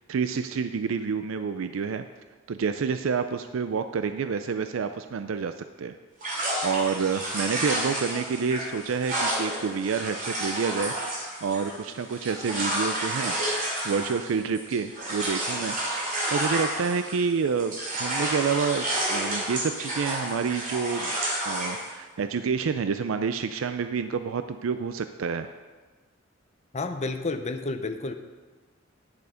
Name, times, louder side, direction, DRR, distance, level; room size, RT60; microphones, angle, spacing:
voice 1, 0.1-2.0 2.5-6.0 6.3-13.4 13.8-15.8 16.3-21.2 21.5-25.5, right 5 dB, 85° right, 9 dB, 0.4 m, -28 dB
sound 1, 6.2-17.3 17.6-21.9, right 1 dB, 45° right, 2.9 m, -30 dB
voice 2, 26.7-28.1, left 3 dB, 35° left, 7 dB, 0.6 m, -30 dB
10.5 x 6.8 x 5.0 m, 1.3 s
head